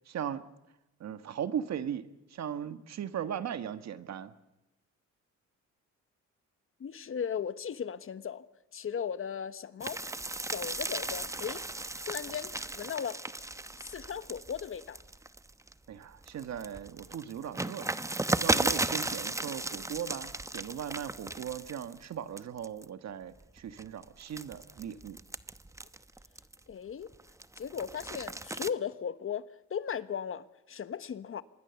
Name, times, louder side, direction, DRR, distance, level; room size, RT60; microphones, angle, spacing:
voice 1, 0.1-0.4 1.0-4.3 15.9-18.0 18.4-25.2, right 9 dB, 60° right, 1.5 m, -38 dB
voice 2, 6.8-8.4 8.7-10.0 10.5-11.6 12.0-13.2 13.8-15.0 26.7-27.1 27.6-31.4, left 7 dB, 45° left, 1.1 m, -37 dB
sound 1, 9.8-15.7 16.2-22.1 22.4-22.8 23.4-26.7 27.1-28.7, right 2 dB, 10° right, 0.8 m, -35 dB
26.0 x 21.5 x 7.1 m
cardioid pair, 90°, 30 cm